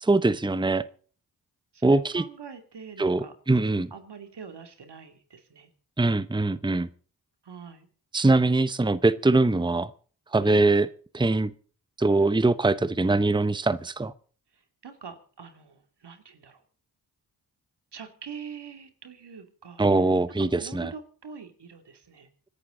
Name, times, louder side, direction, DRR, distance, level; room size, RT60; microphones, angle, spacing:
voice 1, 0.0-0.9 1.8-2.2 3.0-3.9 6.0-6.9 8.1-9.9 10.3-10.9 11.1-11.5 12.0-14.1 19.8-20.9, right 2 dB, 10° right, 15 dB, 0.9 m, -22 dB
voice 2, 1.7-3.3 3.9-5.7 7.4-7.9 10.4-10.6 14.5-16.6 17.9-19.8 20.6-22.3, right 6 dB, 80° right, 7 dB, 2.7 m, -44 dB
26.5 x 11.0 x 3.9 m, 0.41 s
cardioid pair, 45°, 40 cm